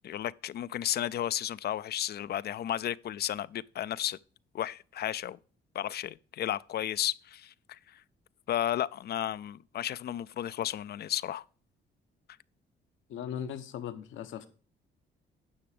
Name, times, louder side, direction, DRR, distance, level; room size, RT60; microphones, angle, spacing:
voice 1, 0.0-4.2 4.5-5.4 5.7-8.0 8.5-11.4, left 11 dB, 55° left, 0.4 m, -33 dB
voice 2, 13.1-14.5, left 9 dB, 80° left, 1.0 m, -38 dB
10.0 x 6.0 x 5.0 m
cardioid pair, 90°, 20 cm